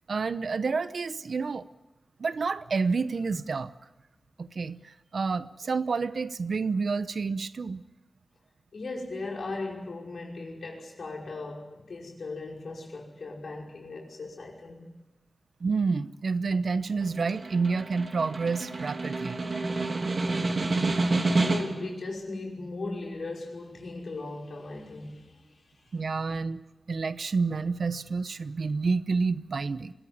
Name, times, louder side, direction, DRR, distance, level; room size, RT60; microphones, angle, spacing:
voice 1, 0.1-1.7 2.2-3.7 4.4-7.8 15.6-19.4 25.9-29.9, right 4 dB, 80° right, 0.9 m, -29 dB
voice 2, 8.7-14.9 21.3-25.5, left 3 dB, 90° left, 5.5 m, -38 dB
Snare drum, 17.0-21.9, right 2 dB, 60° right, 3.1 m, -28 dB
24.5 x 16.0 x 9.6 m
wide cardioid pair, 90°, 0 cm